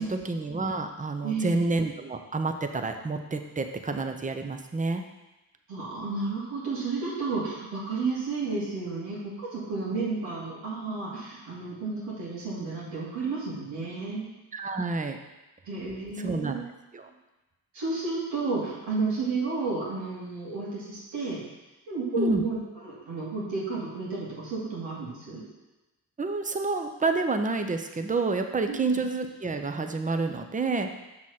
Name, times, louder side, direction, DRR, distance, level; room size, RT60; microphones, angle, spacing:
voice 1, 0.0-5.0 14.5-15.2 16.2-16.6 16.9-17.1 22.2-22.4 26.2-30.9, right 3 dB, 20° right, 6 dB, 0.7 m, -29 dB
voice 2, 1.2-1.7 5.7-14.2 15.7-16.7 17.7-21.4 21.9-25.4 28.7-28.8, right 4 dB, 85° right, -6 dB, 2.4 m, -32 dB
6.2 x 4.0 x 5.8 m, 1.0 s
supercardioid pair, 50°, 42 cm